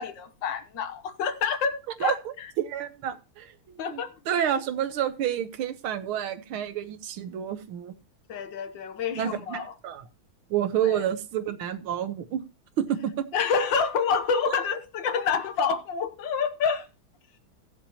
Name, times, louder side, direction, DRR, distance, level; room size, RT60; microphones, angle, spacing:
voice 1, 0.0-2.5 3.8-4.1 8.3-9.7 13.3-16.9, left 6 dB, 65° left, 1.6 m, -28 dB
voice 2, 2.0-7.9 9.1-10.1 10.5-12.4 12.8-13.3 14.5-14.6, right 9 dB, 85° right, 1.8 m, -29 dB
18.0 x 7.3 x 2.9 m
omnidirectional pair, 2.3 m